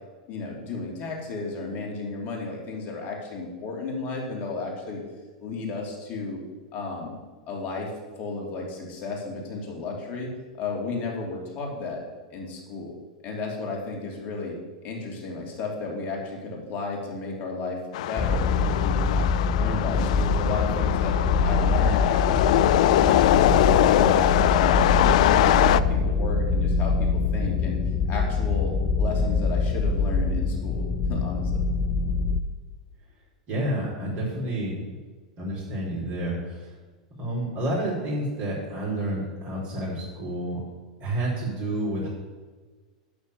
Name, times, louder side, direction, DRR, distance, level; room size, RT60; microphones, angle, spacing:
voice 1, 0.3-5.0 5.4-6.4 6.7-7.2 7.5-7.9 8.2-10.3 10.6-12.0 12.3-12.9 13.2-14.6 14.8-19.3 19.5-21.2 21.4-23.5 23.8-27.8 28.1-31.5, left 3 dB, 45° left, -1 dB, 3.4 m, -33 dB
sound 1, 17.9-25.8, left 13 dB, 65° left, 0.4 m, -22 dB
sound 2, 18.2-32.4, left 4 dB, 25° left, 0.9 m, -24 dB
voice 2, 33.5-34.8 35.4-36.7 37.2-40.6 41.0-42.1, right 1 dB, 45° right, -5 dB, 4.0 m, -29 dB
12.0 x 4.4 x 8.3 m, 1.4 s
hypercardioid pair, 100°, 4 cm